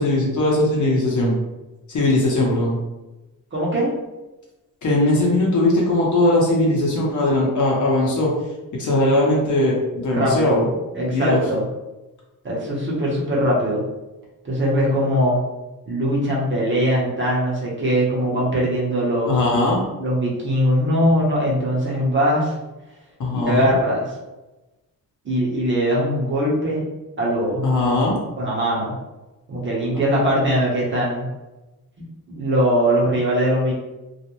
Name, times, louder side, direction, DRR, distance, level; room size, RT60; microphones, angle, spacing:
voice 1, 0.0-1.3 1.9-2.8 4.8-8.3 8.8-10.7 11.0-11.4 19.3-19.8 23.2-23.7 27.6-28.2, left 1 dB, 55° left, -3 dB, 0.8 m, -19 dB
voice 2, 3.5-3.9 10.1-10.7 10.9-11.6 12.4-13.8 14.4-15.4 15.9-19.4 20.0-22.5 23.4-24.1 25.2-26.8 27.2-27.7 28.4-28.9 29.5-31.3 32.3-33.7, equal, 35° right, -5 dB, 0.7 m, -21 dB
2.4 x 2.0 x 2.8 m, 1.1 s
wide cardioid pair, 145°, 35 cm